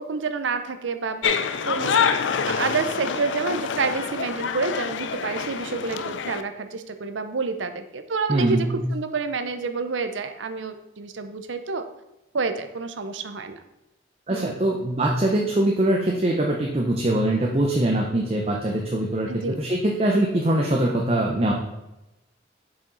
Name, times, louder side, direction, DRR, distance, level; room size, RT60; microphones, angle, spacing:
voice 1, 0.0-2.1 2.5-11.8 12.3-13.6 14.3-14.5 19.3-19.6, right 4 dB, 80° right, 9 dB, 0.6 m, -29 dB
sound 1, 1.2-6.4, left 6 dB, 80° left, 0.4 m, -26 dB
voice 2, 8.3-8.8 14.3-19.3 19.6-21.5, right 1 dB, 30° right, -1 dB, 0.7 m, -22 dB
7.1 x 5.0 x 3.9 m, 0.94 s
head